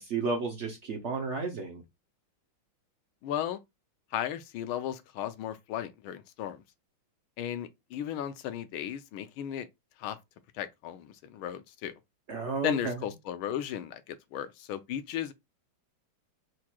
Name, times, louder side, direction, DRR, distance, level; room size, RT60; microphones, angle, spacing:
voice 1, 0.0-1.8 12.3-12.9, right 4 dB, 70° right, 0.6 m, -32 dB
voice 2, 3.2-3.6 4.1-6.6 7.4-9.7 10.0-10.2 10.5-11.9 12.6-15.3, left 10 dB, 85° left, 1.5 m, -35 dB
4.8 x 2.3 x 4.4 m
omnidirectional pair, 2.2 m